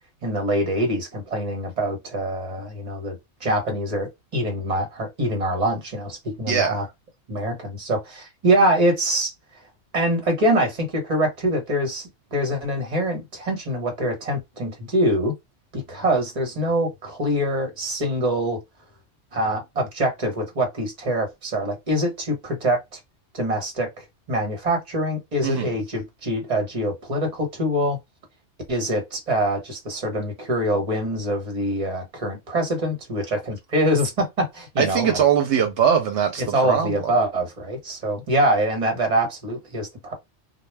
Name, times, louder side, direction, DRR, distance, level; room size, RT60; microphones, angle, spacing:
voice 1, 0.2-6.8 7.3-9.3 9.9-15.3 15.7-18.6 19.3-23.0 23.3-28.0 28.7-35.2 36.5-40.1, right 1 dB, 35° right, 1.1 m, -24 dB
voice 2, 6.5-6.9 25.4-25.7 34.8-37.1, right 8 dB, 75° right, 0.9 m, -21 dB
2.2 x 2.2 x 3.2 m
omnidirectional pair, 1.2 m